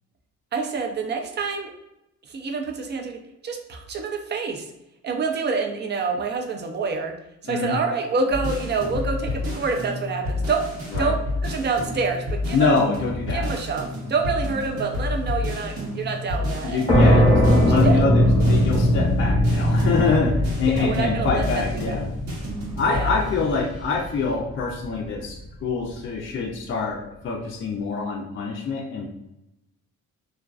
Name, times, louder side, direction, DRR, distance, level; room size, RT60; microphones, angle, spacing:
voice 1, 0.5-1.7 2.3-4.7 5.0-7.1 7.4-10.6 11.0-12.8 13.3-17.2 17.7-18.0 20.6-22.0 22.9-23.2, right 4 dB, 35° right, 3 dB, 0.4 m, -27 dB
voice 2, 7.5-7.8 10.9-11.1 12.5-13.4 16.6-22.1 22.8-29.1, left 4 dB, 40° left, 0 dB, 0.4 m, -25 dB
sound 1, 8.3-24.3, left 2 dB, 60° right, 0.9 m, -30 dB
sound 2, 16.9-24.3, equal, 15° left, 0.8 m, -20 dB
2.3 x 2.3 x 2.3 m, 0.88 s
cardioid pair, 90°, 30 cm